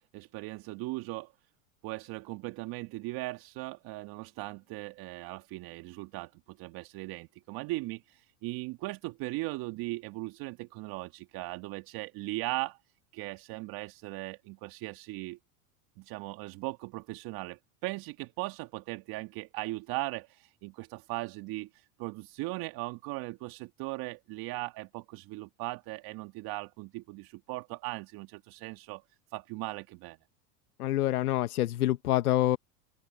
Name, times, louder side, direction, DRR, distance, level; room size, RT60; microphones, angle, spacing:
voice 1, 0.1-1.3 1.8-12.8 13.1-15.4 16.0-29.0 29.3-30.2, right 21 dB, 50° right, 1.8 m, -38 dB
voice 2, 30.8-32.6, left 14 dB, 85° left, 1.2 m, -26 dB
open air
hypercardioid pair, 95°, 44 cm